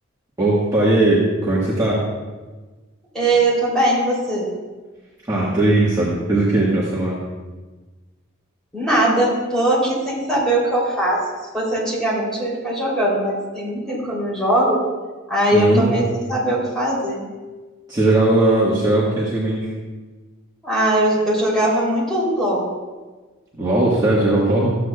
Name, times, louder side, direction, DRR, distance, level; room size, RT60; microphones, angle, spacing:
voice 1, 0.4-2.0 5.3-7.2 15.5-16.0 17.9-19.7 23.6-24.8, right 2 dB, 20° right, -8 dB, 1.4 m, -18 dB
voice 2, 3.1-4.5 8.7-11.2 11.5-14.8 15.3-16.0 16.3-17.2 20.6-22.6, right 1 dB, 5° left, -7 dB, 3.1 m, -20 dB
13.5 x 8.0 x 2.3 m, 1.3 s
head